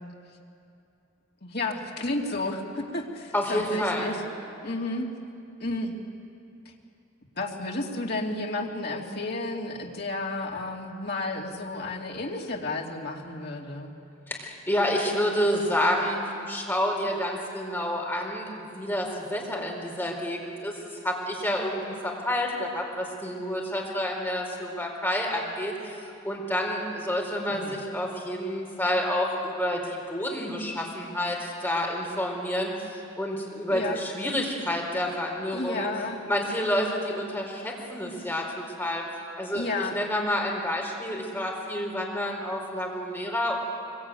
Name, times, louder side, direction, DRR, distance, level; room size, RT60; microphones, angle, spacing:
voice 1, 1.4-4.2 4.6-5.1 5.6-6.0 7.4-13.9 27.5-27.8 33.7-34.0 35.5-36.2 39.5-40.0, left 2 dB, 50° left, -1 dB, 2.9 m, -32 dB
voice 2, 3.3-4.1 14.3-20.8 21.0-26.0 26.2-32.9 33.2-35.9 36.3-39.0 39.4-43.6, left 1 dB, 10° left, -1 dB, 4.7 m, -29 dB
24.5 x 23.0 x 9.3 m, 2.5 s
head